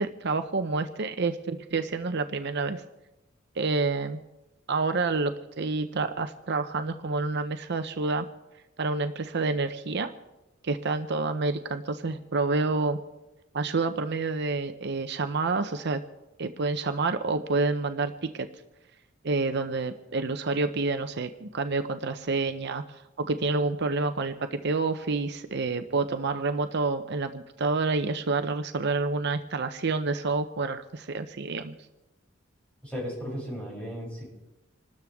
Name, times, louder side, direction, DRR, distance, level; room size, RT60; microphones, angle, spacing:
voice 1, 0.0-2.8 3.6-4.2 4.7-8.3 8.8-10.1 10.6-13.0 13.5-16.0 16.4-18.5 19.2-31.7, right 3 dB, 60° right, 9 dB, 0.7 m, -28 dB
voice 2, 32.8-34.3, equal, 5° left, -5 dB, 7.8 m, -35 dB
27.0 x 13.0 x 3.6 m, 1.0 s
head